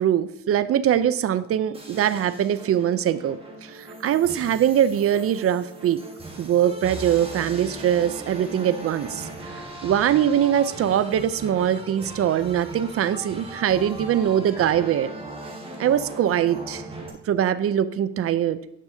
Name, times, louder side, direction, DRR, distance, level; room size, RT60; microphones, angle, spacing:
voice 1, 0.0-6.0 6.4-15.1 15.8-16.8 17.2-18.6, right 10 dB, 50° right, 15 dB, 0.5 m, -22 dB
sound 1, 1.7-17.1, right 2 dB, 20° right, 1.7 m, -39 dB
9.8 x 6.1 x 2.7 m, 0.85 s
cardioid pair, 90°, 30 cm